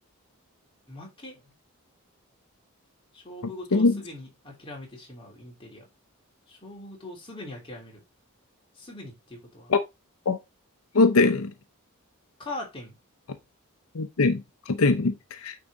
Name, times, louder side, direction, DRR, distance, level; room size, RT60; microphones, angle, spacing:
voice 1, 0.9-1.5 3.1-5.8 6.5-8.0 8.7-9.7 12.4-13.0, left 2 dB, 25° left, 3.1 m, -41 dB
voice 2, 3.7-4.0 9.7-9.8 10.3-10.4 10.9-11.5 13.9-15.6, left 3 dB, 85° left, 0.7 m, -22 dB
9.0 x 3.8 x 4.1 m
head